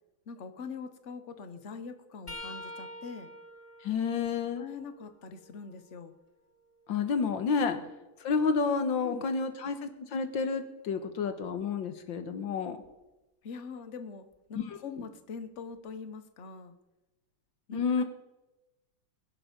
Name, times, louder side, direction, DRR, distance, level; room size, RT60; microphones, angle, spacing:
voice 1, 0.3-3.3 4.6-6.1 7.7-7.9 9.0-9.3 13.4-16.7 17.7-18.0, left 5 dB, 40° left, 9 dB, 1.2 m, -43 dB
sound 1, 2.3-6.0 6.6-8.5 11.4-11.6 12.8-13.0 14.3-14.4, left 1 dB, 15° left, 1.3 m, -49 dB
voice 2, 3.8-4.6 6.9-7.8 8.2-12.8 17.7-18.0, left 5 dB, 60° left, 8 dB, 2.0 m, -30 dB
21.5 x 11.0 x 5.3 m, 1.0 s
omnidirectional pair, 2.4 m